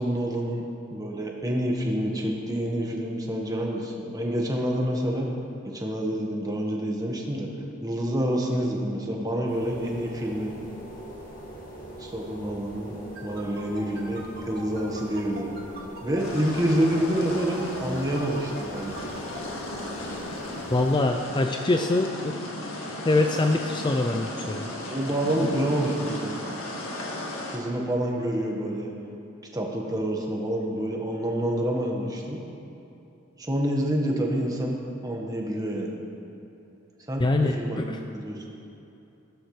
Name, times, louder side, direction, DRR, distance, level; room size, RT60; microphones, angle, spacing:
voice 1, 0.0-5.3 5.6-7.5 7.8-10.5 12.0-12.9 13.2-15.5 16.0-19.0 21.5-21.7 24.9-26.3 27.5-28.9 29.5-32.4 33.4-34.8 35.0-36.0 37.1-37.8 38.1-38.4, right 1 dB, 20° right, -1 dB, 1.4 m, -27 dB
sound 1, 9.5-20.9, equal, 40° left, 2.2 m, -42 dB
sound 2, 13.1-19.4, right 2 dB, 50° right, 2.2 m, -42 dB
sound 3, 16.2-27.6, left 1 dB, 85° left, 1.7 m, -35 dB
voice 2, 20.7-22.5 23.0-24.7 37.2-38.0, left 2 dB, 20° left, 4 dB, 0.4 m, -24 dB
15.5 x 13.0 x 3.3 m, 2.8 s
head